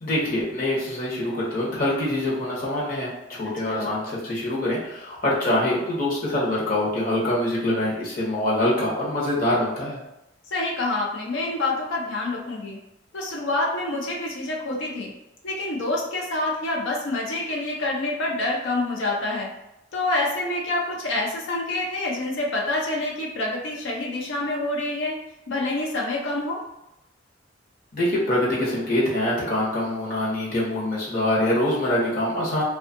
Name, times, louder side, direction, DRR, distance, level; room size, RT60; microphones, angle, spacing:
voice 1, 0.0-10.0 27.9-32.6, left 1 dB, 50° left, -5 dB, 0.8 m, -24 dB
voice 2, 10.5-12.8 13.1-15.1 15.4-19.5 19.9-25.2 25.5-26.6, left 2 dB, 75° left, -2 dB, 0.5 m, -27 dB
2.6 x 2.3 x 2.5 m, 0.88 s
head